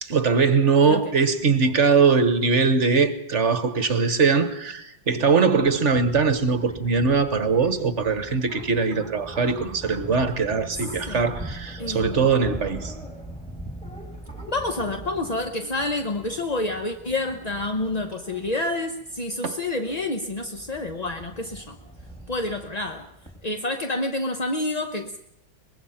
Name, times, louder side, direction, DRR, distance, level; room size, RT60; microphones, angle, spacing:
voice 1, 0.0-12.9 19.4-19.5, right 5 dB, 45° right, 1.4 m, -21 dB
voice 2, 0.8-1.2 10.7-11.3 11.8-12.3 14.5-21.8 22.3-23.1 23.4-25.2, left 2 dB, 30° left, 0.8 m, -28 dB
sound 1, 5.6-23.4, right 1 dB, 5° left, 3.4 m, -41 dB
23.5 x 21.0 x 5.8 m
omnidirectional pair, 2.0 m